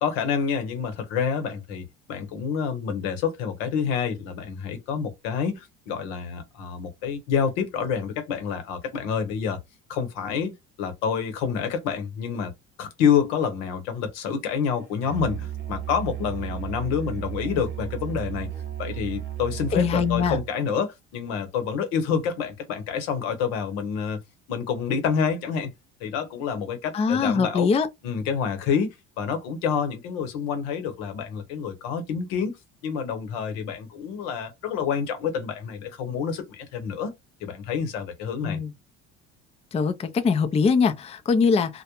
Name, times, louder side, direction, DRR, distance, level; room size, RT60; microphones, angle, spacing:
voice 1, 0.0-9.6 9.9-10.5 10.8-12.5 12.8-18.5 18.8-24.2 24.5-25.7 26.0-27.7 28.0-32.6 32.8-37.1 37.4-38.6, left 6 dB, 80° left, 0.9 m, -28 dB
Musical instrument, 15.0-20.5, right 11 dB, 30° right, 0.8 m, -34 dB
voice 2, 19.7-20.4 26.9-27.9 38.4-38.7 39.7-41.8, left 5 dB, 20° left, 0.4 m, -22 dB
2.3 x 2.1 x 2.9 m
supercardioid pair, 75°, 35 cm